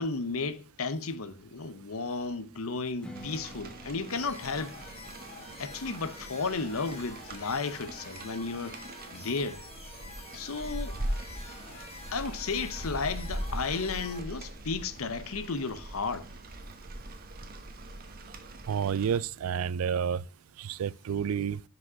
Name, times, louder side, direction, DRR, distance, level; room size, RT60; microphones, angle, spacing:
voice 1, 0.0-4.8 5.6-8.8 9.1-9.6 10.3-11.0 12.1-16.3, left 4 dB, 90° left, 0.8 m, -33 dB
Strum, 3.0-8.2, equal, 5° left, 1.3 m, -52 dB
Rain, 3.1-19.2, right 1 dB, 45° right, 1.1 m, -41 dB
sound 1, 4.1-14.2, left 2 dB, 30° left, 1.8 m, -47 dB
voice 2, 18.7-20.3 20.6-21.6, right 7 dB, 85° right, 0.4 m, -30 dB
6.1 x 5.4 x 5.8 m
head